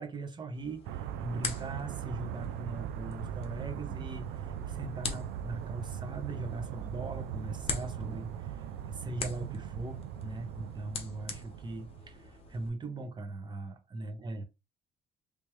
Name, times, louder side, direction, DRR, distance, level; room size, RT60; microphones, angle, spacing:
voice 1, 0.0-14.4, right 2 dB, 25° right, 0.9 m, -40 dB
sound 1, 0.5-12.7, left 4 dB, 35° left, 1.0 m, -44 dB
sound 2, 0.8-12.5, right 10 dB, 85° right, 0.4 m, -40 dB
3.4 x 3.0 x 3.0 m
cardioid pair, 110°, 17 cm